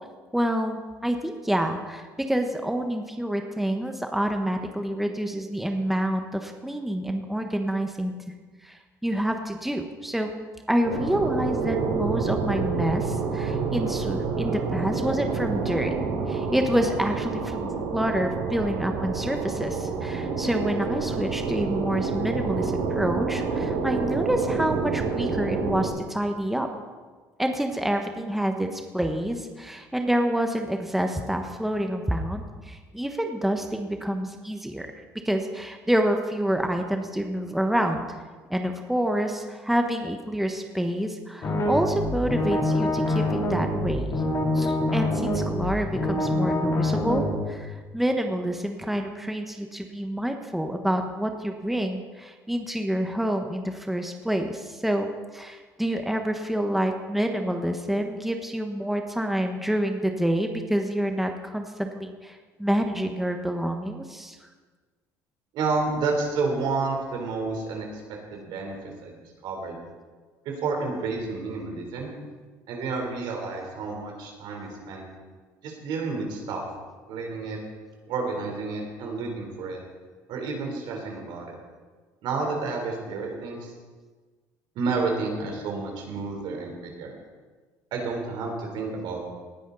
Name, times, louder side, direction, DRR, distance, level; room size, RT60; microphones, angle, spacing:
voice 1, 0.3-8.1 8.6-10.3 10.7-15.9 16.3-26.7 27.4-34.9 35.2-38.2 38.5-44.2 44.5-64.4, equal, 5° right, 4 dB, 1.2 m, -28 dB
sound 1, 10.8-25.9, right 4 dB, 90° right, 2.6 m, -28 dB
sound 2, 41.4-47.4, left 1 dB, 45° left, 3.4 m, -25 dB
voice 2, 65.5-68.0 68.3-69.1 69.4-69.7 70.4-72.1 72.7-75.0 75.6-76.7 77.1-77.6 78.1-79.8 80.3-81.6 82.2-83.7 84.8-87.1 87.9-89.2, right 4 dB, 70° right, 1 dB, 3.8 m, -30 dB
18.5 x 10.0 x 4.1 m, 1.4 s
supercardioid pair, 85°, 8 cm